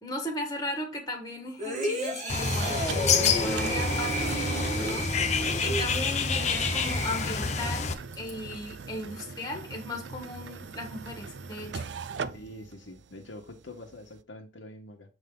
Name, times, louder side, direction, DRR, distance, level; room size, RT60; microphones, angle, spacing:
voice 1, 0.0-2.8 3.1-11.9, left 1 dB, 20° left, 1.4 m, -37 dB
sound 1, 1.6-7.7 8.1-8.3, right 1 dB, 35° right, 1.5 m, -33 dB
Bird, 2.3-7.9, left 5 dB, 35° left, 0.7 m, -28 dB
sound 2, 2.5-14.2, right 5 dB, 65° right, 0.4 m, -41 dB
voice 2, 12.3-15.2, left 1 dB, 80° left, 1.4 m, -45 dB
7.6 x 3.7 x 3.7 m
head